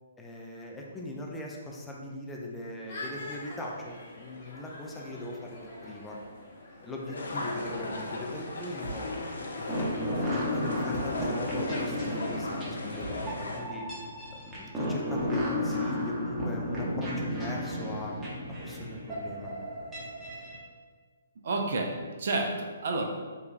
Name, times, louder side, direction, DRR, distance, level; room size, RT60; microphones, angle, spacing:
voice 1, 0.2-5.6 5.8-6.2 6.8-9.1 9.5-18.2 18.6-19.5, left 1 dB, 10° left, -2 dB, 0.4 m, -40 dB
sound 1, 2.9-9.3, left 2 dB, 45° left, 0.8 m, -45 dB
sound 2, 7.1-13.6, left 2 dB, 75° left, 0.4 m, -36 dB
sound 3, 9.7-20.6, left 1 dB, 15° right, 0.8 m, -33 dB
voice 2, 21.4-23.0, right 2 dB, 60° right, 3 dB, 0.4 m, -30 dB
3.0 x 2.3 x 2.4 m, 1.4 s
hypercardioid pair, 135°, 0 cm